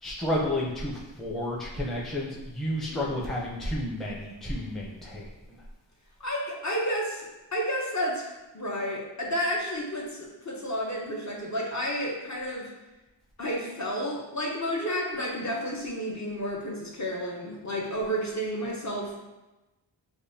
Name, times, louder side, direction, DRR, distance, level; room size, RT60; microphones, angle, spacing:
voice 1, 0.0-5.6, left 1 dB, ahead, -3 dB, 0.5 m, -31 dB
voice 2, 6.2-12.7 13.4-19.2, equal, 40° left, -2 dB, 0.7 m, -31 dB
5.1 x 2.1 x 2.7 m, 1.1 s
wide cardioid pair, 60°, 45 cm